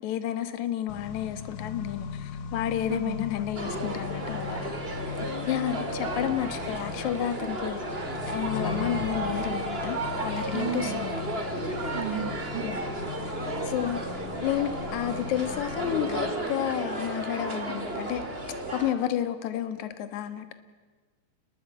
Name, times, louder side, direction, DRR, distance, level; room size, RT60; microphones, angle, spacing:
voice 1, 0.0-4.7 5.5-7.8 8.3-11.2 12.6-12.9 13.2-13.3 13.6-20.5, left 11 dB, 70° left, 10 dB, 1.8 m, -31 dB
Accelerating revving vroom, 0.9-16.3, left 7 dB, 85° left, 1.6 m, -39 dB
voice 2, 2.9-3.2 10.5-11.0 11.9-12.6, right 11 dB, 75° right, 4 dB, 3.8 m, -33 dB
sound 1, 3.5-18.9, right 2 dB, 30° right, 1.1 m, -33 dB
28.5 x 20.5 x 8.3 m, 1.4 s
omnidirectional pair, 5.2 m